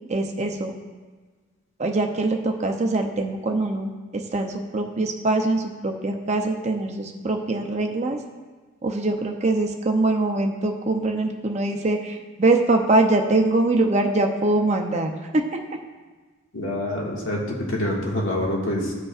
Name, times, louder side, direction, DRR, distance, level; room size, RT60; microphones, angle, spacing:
voice 1, 0.1-0.8 1.8-8.2 8.8-15.6, right 2 dB, 30° right, 4 dB, 0.6 m, -23 dB
voice 2, 16.5-18.9, left 1 dB, 60° left, -3 dB, 1.8 m, -26 dB
15.5 x 5.2 x 2.4 m, 1.4 s
head